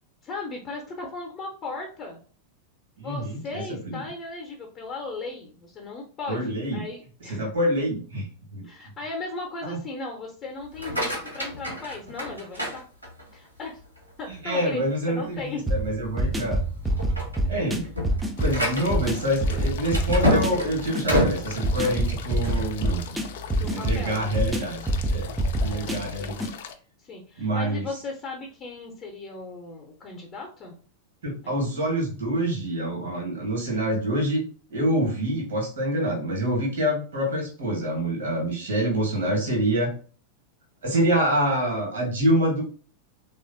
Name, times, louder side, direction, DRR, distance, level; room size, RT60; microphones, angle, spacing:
voice 1, 0.2-2.2 3.0-7.5 8.6-12.8 13.3-13.8 14.2-15.6 17.8-17.9 23.5-24.4 25.5-26.4 27.0-30.8 31.4-31.7, left 3 dB, 30° left, 1 dB, 0.7 m, -37 dB
voice 2, 3.0-4.0 6.3-6.8 7.3-8.3 8.5-8.6 9.6-9.8 14.4-16.6 17.5-17.9 18.4-23.2 23.6-25.3 25.6-26.5 27.4-27.9 31.2-34.4 34.7-39.9 40.8-42.6, right 1 dB, 65° right, 0 dB, 1.3 m, -26 dB
sound 1, 10.6-13.5 14.0-14.4 14.9-15.0 15.4-15.5 16.2-16.5 16.8-22.7, left 1 dB, 90° right, 1.1 m, -28 dB
sound 2, 15.7-26.5, right 1 dB, 5° right, 0.4 m, -27 dB
sound 3, 18.4-26.7, left 7 dB, 55° left, 0.3 m, -41 dB
3.3 x 2.4 x 2.5 m, 0.41 s
figure-of-eight pair, 90°, 0 cm